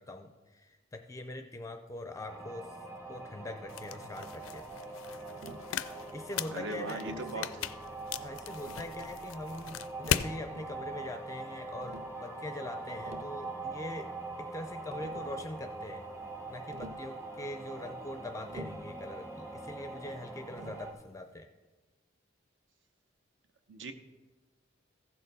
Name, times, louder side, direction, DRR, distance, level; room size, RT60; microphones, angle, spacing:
voice 1, 0.0-2.8 3.1-4.7 6.1-7.5 8.2-14.1 14.4-16.1 16.5-21.5, left 1 dB, 15° left, 6 dB, 0.4 m, -43 dB
sound 1, 2.3-20.9, right 2 dB, 10° right, 1.1 m, -43 dB
sound 2, 3.7-10.3, left 9 dB, 85° left, 0.4 m, -38 dB
Tap, 5.4-5.7 7.1-7.4 8.4-9.0 10.0-10.8 11.8-12.2 12.9-13.4 14.5-14.6 14.9-15.4 16.7-17.1 18.5-19.0 20.6-20.9, right 1 dB, 35° right, 0.5 m, -48 dB
voice 2, 6.5-7.5 23.7-23.9, right 2 dB, 65° right, 8 dB, 0.8 m, -38 dB
15.0 x 6.7 x 4.0 m, 1.3 s
head